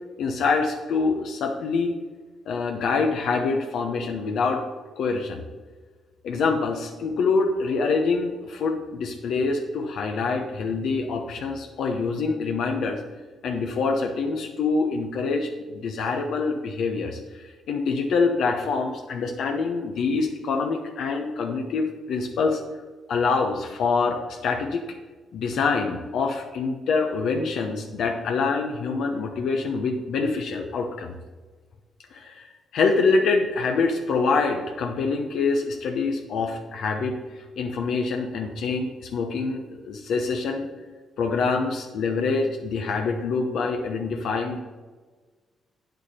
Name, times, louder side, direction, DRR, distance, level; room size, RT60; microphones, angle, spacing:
voice 1, 0.2-1.9 2.5-4.6 5.0-5.4 6.2-13.0 13.4-22.6 23.1-24.8 25.3-31.1 32.1-37.2 37.6-40.7 41.2-44.6, left 4 dB, 75° left, 3 dB, 0.9 m, -25 dB
8.5 x 8.0 x 4.4 m, 1.4 s
cardioid pair, 90°, 0 cm